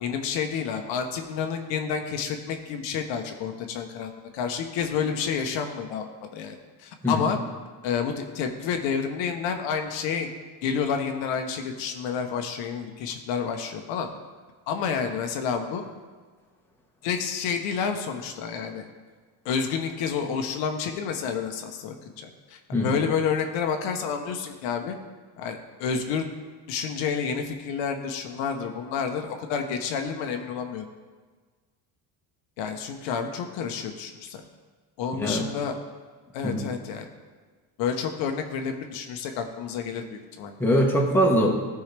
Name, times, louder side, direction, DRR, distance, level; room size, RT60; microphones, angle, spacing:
voice 1, 0.0-6.1 6.3-7.4 7.8-10.3 10.6-14.1 14.7-15.8 17.0-18.9 19.4-25.0 25.4-26.3 26.7-30.9 32.6-34.4 35.0-35.7 36.3-37.1 37.8-40.5, left 6 dB, 70° left, 5 dB, 0.9 m, -29 dB
voice 2, 40.6-41.5, equal, 5° left, -2 dB, 1.3 m, -22 dB
14.0 x 4.7 x 3.3 m, 1.4 s
cardioid pair, 125°, 46 cm